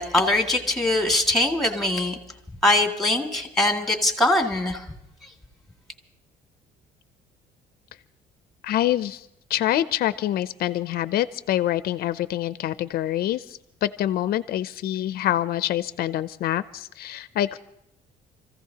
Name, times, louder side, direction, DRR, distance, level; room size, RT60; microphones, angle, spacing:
voice 1, 0.0-2.2 2.6-4.9, left 2 dB, ahead, 3 dB, 2.2 m, -22 dB
voice 2, 8.6-17.6, left 13 dB, 65° left, 14 dB, 0.5 m, -26 dB
28.5 x 15.5 x 2.9 m, 0.87 s
cardioid pair, 110°, 17 cm